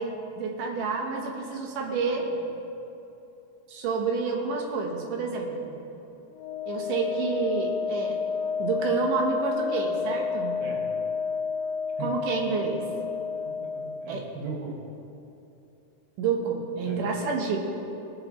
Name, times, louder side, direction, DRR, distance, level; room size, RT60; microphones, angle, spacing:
voice 1, 0.0-2.4 3.7-5.7 6.6-8.2 8.6-10.6 12.0-12.8 14.1-14.3 16.2-17.6, right 4 dB, 85° right, 1 dB, 2.7 m, -29 dB
Wind instrument woodwind instrument, 6.3-14.2, left 5 dB, 85° left, 2.2 m, -30 dB
voice 2, 13.4-14.8 16.8-17.0, right 4 dB, 45° right, -2 dB, 1.6 m, -38 dB
20.0 x 6.8 x 3.1 m, 2.8 s
omnidirectional pair, 3.6 m